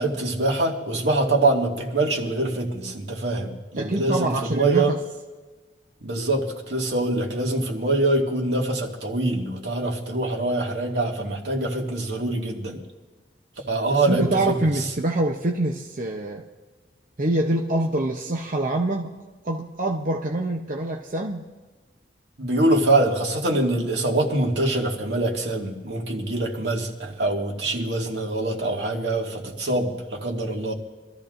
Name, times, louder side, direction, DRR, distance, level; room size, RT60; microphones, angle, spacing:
voice 1, 0.0-4.9 6.0-12.8 13.7-14.6 22.4-30.7, right 2 dB, 80° right, 0 dB, 2.1 m, -24 dB
voice 2, 3.8-5.0 13.6-13.7 14.1-16.4 17.2-19.1 19.4-21.5, right 2 dB, 50° right, 0 dB, 0.8 m, -25 dB
25.5 x 13.5 x 2.6 m, 1.3 s
head